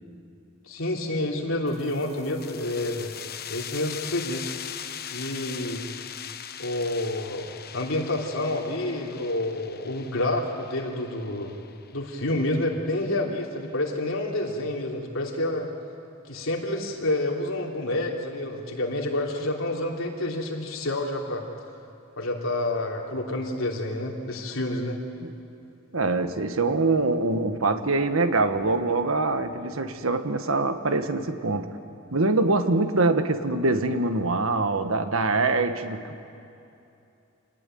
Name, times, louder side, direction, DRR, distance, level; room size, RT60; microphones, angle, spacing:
voice 1, 0.7-3.1 3.5-4.5 5.1-5.8 6.6-7.5 7.7-11.5 11.9-15.7 16.3-21.4 22.2-25.0, left 1 dB, 75° left, 0 dB, 3.3 m, -28 dB
sound 1, 1.7-13.0, left 9 dB, 50° left, 1.0 m, -41 dB
voice 2, 25.9-31.7 32.1-36.2, right 3 dB, 90° right, 8 dB, 1.5 m, -24 dB
26.5 x 19.0 x 9.3 m, 2.7 s
head